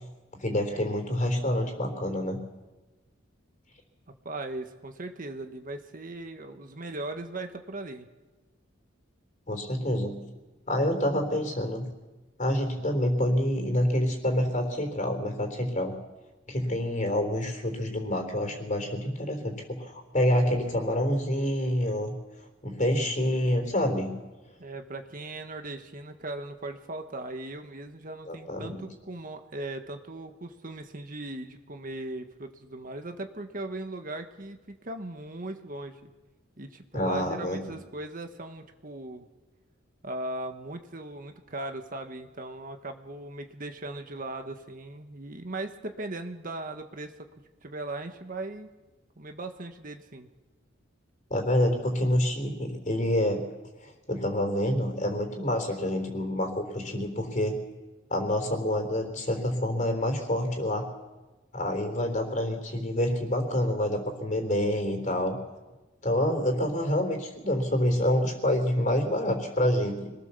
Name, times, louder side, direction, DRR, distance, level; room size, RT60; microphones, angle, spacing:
voice 1, 0.4-2.4 9.5-10.2 10.7-11.9 12.4-15.9 16.5-22.1 22.6-24.1 28.3-28.8 36.9-37.8 51.3-53.4 53.8-57.5 58.1-60.9 61.5-65.4 66.0-70.1, left 1 dB, 40° left, 4 dB, 3.8 m, -27 dB
voice 2, 4.2-8.1 24.6-36.1 36.6-39.2 40.0-47.1 47.6-48.7 49.2-50.3, right 2 dB, 45° right, 6 dB, 1.5 m, -38 dB
25.5 x 20.0 x 7.0 m, 1.2 s
head